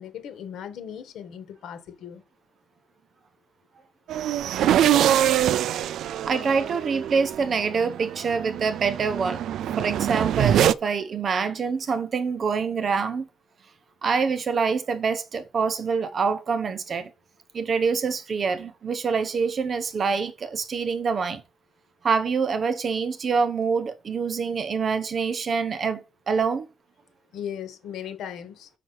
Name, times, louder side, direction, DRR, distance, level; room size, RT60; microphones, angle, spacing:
voice 1, 0.0-2.2 27.3-28.7, left 9 dB, 65° left, 1.6 m, -37 dB
sound 1, 4.1-10.7, right 11 dB, 60° right, 0.4 m, -24 dB
voice 2, 6.2-13.3 14.0-17.1 17.5-21.4 22.0-26.7, right 5 dB, 35° right, 0.8 m, -26 dB
6.4 x 5.8 x 5.8 m
cardioid pair, 175°, 0 cm